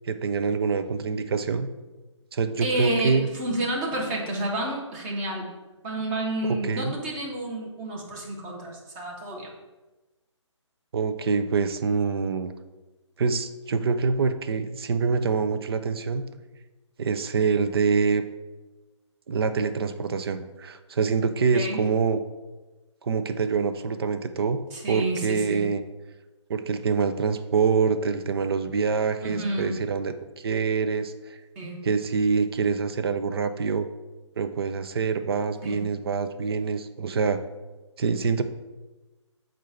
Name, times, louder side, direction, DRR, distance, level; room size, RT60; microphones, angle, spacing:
voice 1, 0.1-1.7 2.3-3.3 6.6-7.0 10.9-12.5 13.2-16.2 17.0-18.2 19.3-22.2 23.0-24.6 24.9-25.8 26.5-31.1 31.8-33.9 34.4-37.4 38.0-38.4, right 5 dB, 50° right, 10 dB, 0.5 m, -25 dB
voice 2, 2.6-5.5 5.8-9.5 21.5-21.8 24.7-25.7 29.2-29.8 31.5-31.8 35.6-35.8, right 1 dB, 25° right, -1 dB, 1.3 m, -30 dB
7.4 x 2.6 x 5.6 m, 1.1 s
figure-of-eight pair, 145°, 16 cm